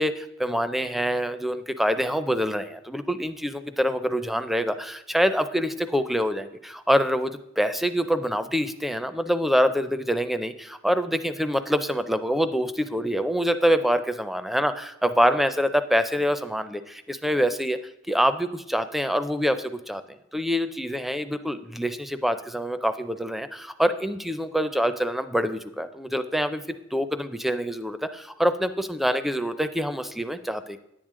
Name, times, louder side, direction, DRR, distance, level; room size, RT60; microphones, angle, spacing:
voice 1, 0.0-17.8 18.1-26.6 26.9-30.8, equal, ahead, 10 dB, 0.4 m, -25 dB
10.5 x 8.8 x 3.7 m, 0.84 s
head